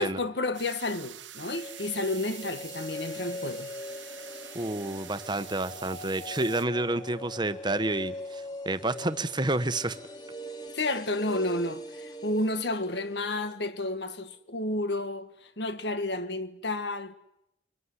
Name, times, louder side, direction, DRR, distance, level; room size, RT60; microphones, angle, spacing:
voice 1, 0.0-3.7 10.7-17.1, left 2 dB, 65° left, 1.8 m, -31 dB
sound 1, 0.5-6.7, right 12 dB, 90° right, 1.5 m, -46 dB
sound 2, 1.4-13.6 13.8-13.9, left 1 dB, 25° left, 2.4 m, -42 dB
voice 2, 4.5-10.0, right 2 dB, 25° right, 1.2 m, -29 dB
24.5 x 24.5 x 9.9 m
head